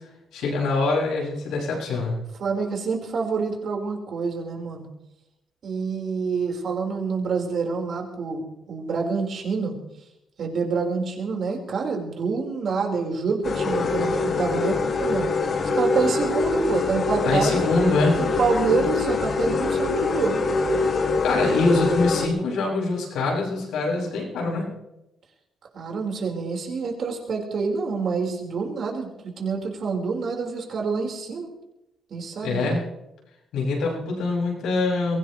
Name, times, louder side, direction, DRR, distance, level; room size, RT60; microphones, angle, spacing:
voice 1, 0.3-2.1 17.2-18.2 21.2-24.7 32.4-32.8 33.5-35.2, left 3 dB, 85° left, -2 dB, 7.1 m, -24 dB
voice 2, 2.4-4.9 5.6-9.7 10.4-15.3 15.7-20.4 25.7-31.5 32.1-32.8, right 5 dB, 55° right, 1 dB, 5.0 m, -27 dB
sound 1, 13.4-22.3, left 3 dB, 50° left, 2.5 m, -24 dB
23.0 x 17.0 x 3.4 m, 0.89 s
cardioid pair, 90°, 0 cm